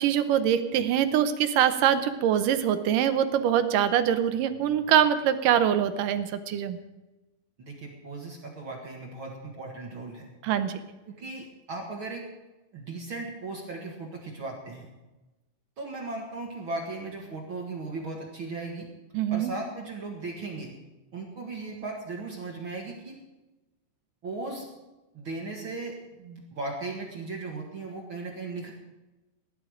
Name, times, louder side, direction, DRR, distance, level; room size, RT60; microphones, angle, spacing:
voice 1, 0.0-6.8 10.4-10.8 19.1-19.5, right 9 dB, 80° right, 10 dB, 2.5 m, -24 dB
voice 2, 7.6-10.3 11.1-12.3 12.7-14.9 15.8-18.9 19.3-20.7 21.1-23.2 24.2-24.7 25.1-28.7, right 3 dB, 45° right, -1 dB, 2.3 m, -37 dB
17.0 x 11.5 x 5.0 m, 1.1 s
omnidirectional pair, 3.8 m